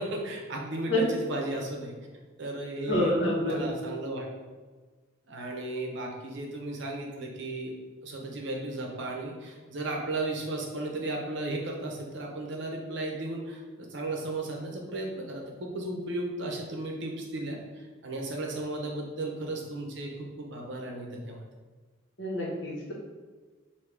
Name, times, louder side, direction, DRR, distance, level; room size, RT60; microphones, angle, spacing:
voice 1, 0.0-1.9 2.4-3.1 3.4-4.3 5.3-7.7 8.0-20.1 20.4-21.4, right 2 dB, 60° right, 0 dB, 0.8 m, -35 dB
voice 2, 2.9-3.6 22.2-22.9, left 1 dB, 60° left, -4 dB, 1.3 m, -27 dB
5.2 x 2.7 x 3.4 m, 1.4 s
head